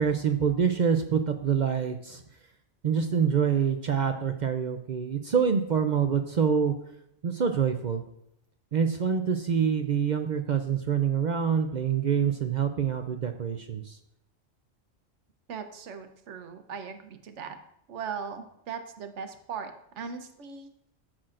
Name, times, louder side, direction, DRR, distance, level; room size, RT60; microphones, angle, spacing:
voice 1, 0.0-2.2 2.8-6.7 7.2-8.0 8.7-14.0, right 7 dB, 55° right, 6 dB, 0.5 m, -26 dB
voice 2, 15.5-17.6 17.9-20.7, right 6 dB, 70° right, 7 dB, 1.1 m, -39 dB
13.0 x 6.1 x 2.5 m, 0.77 s
omnidirectional pair, 1.3 m